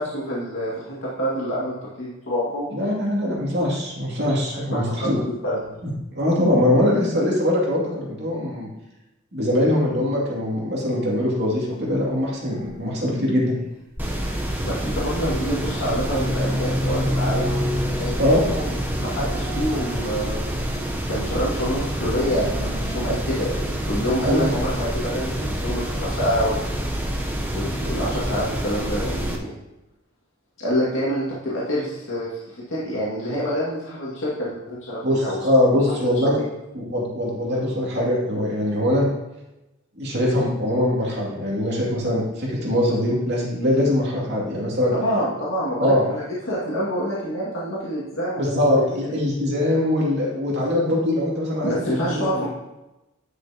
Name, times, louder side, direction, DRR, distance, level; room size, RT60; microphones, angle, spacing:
voice 1, 0.0-2.7 4.5-5.6 14.6-17.5 18.0-18.7 19.0-20.4 21.1-26.8 27.5-29.5 30.6-35.4 35.7-36.3 44.9-49.1 51.6-52.5, equal, 70° left, -7 dB, 2.2 m, -27 dB
voice 2, 2.7-5.2 6.1-8.7 9.3-13.5 18.2-18.4 24.3-24.5 35.0-36.4 36.7-39.1 40.0-44.9 45.8-46.0 48.4-51.7 52.1-52.5, left 1 dB, 55° right, -4 dB, 2.5 m, -22 dB
sound 1, 12.6-12.7 14.5-15.2 15.5-21.0 21.8-23.2, left 1 dB, 35° right, 1.8 m, -30 dB
sound 2, 14.0-29.4, right 1 dB, 10° right, 0.8 m, -27 dB
10.5 x 6.3 x 2.9 m, 0.96 s
head